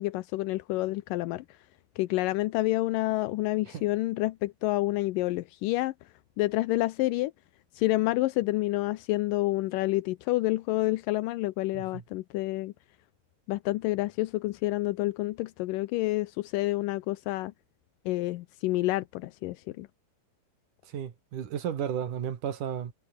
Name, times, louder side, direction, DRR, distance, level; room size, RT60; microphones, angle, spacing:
voice 1, 0.0-1.4 2.0-5.9 6.4-7.3 7.8-12.7 13.5-17.5 18.1-19.9, left 18 dB, 80° left, 2.0 m, -28 dB
voice 2, 20.8-22.9, right 9 dB, 55° right, 3.4 m, -34 dB
omnidirectional pair, 4.6 m